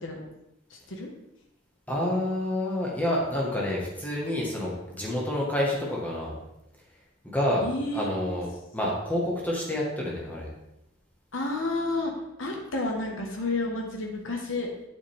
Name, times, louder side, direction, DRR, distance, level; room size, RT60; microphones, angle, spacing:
voice 1, 0.7-1.1 7.6-8.1 11.3-12.1 12.4-14.7, left 2 dB, 80° left, 1 dB, 1.5 m, -30 dB
voice 2, 1.9-6.3 7.2-7.7 7.9-8.5 8.7-10.5, left 1 dB, 10° left, -4 dB, 1.6 m, -28 dB
8.7 x 7.3 x 3.6 m, 0.89 s
head